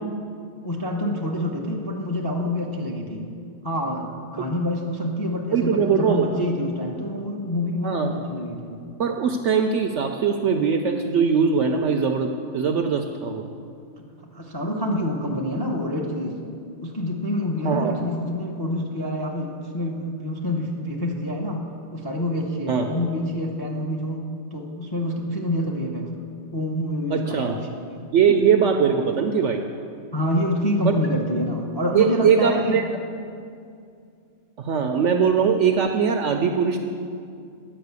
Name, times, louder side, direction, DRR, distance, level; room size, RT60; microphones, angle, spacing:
voice 1, 0.6-3.3 3.6-8.8 14.3-16.4 16.8-21.6 21.9-24.2 24.5-26.1 26.5-28.1 30.1-32.8, left 1 dB, 30° left, 1 dB, 0.4 m, -27 dB
voice 2, 5.5-6.3 7.8-8.1 9.0-13.4 17.6-18.0 22.7-22.9 27.1-27.6 28.1-29.6 30.8-30.9 31.9-32.9 34.6-36.8, right 6 dB, 70° right, 5 dB, 0.7 m, -21 dB
10.0 x 5.6 x 8.1 m, 2.4 s
omnidirectional pair, 1.7 m